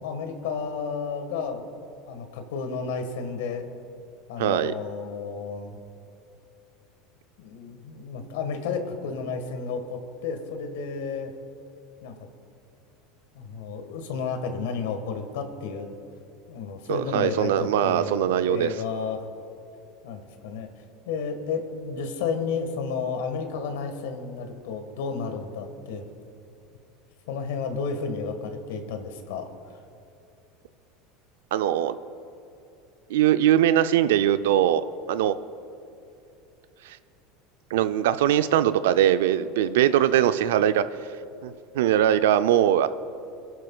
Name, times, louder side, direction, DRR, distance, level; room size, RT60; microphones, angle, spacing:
voice 1, 0.0-1.8 2.1-3.7 4.3-5.8 7.4-11.3 12.0-12.1 13.3-15.9 16.5-19.2 20.0-20.7 21.1-26.1 27.3-29.8, left 5 dB, 80° left, 6 dB, 1.6 m, -32 dB
voice 2, 4.4-4.7 16.9-18.7 31.5-32.0 33.1-35.3 36.9-37.0 37.7-40.9 41.4-42.9, right 11 dB, 80° right, 12 dB, 0.5 m, -21 dB
25.5 x 11.0 x 2.4 m, 2.7 s
supercardioid pair, 100°, 0 cm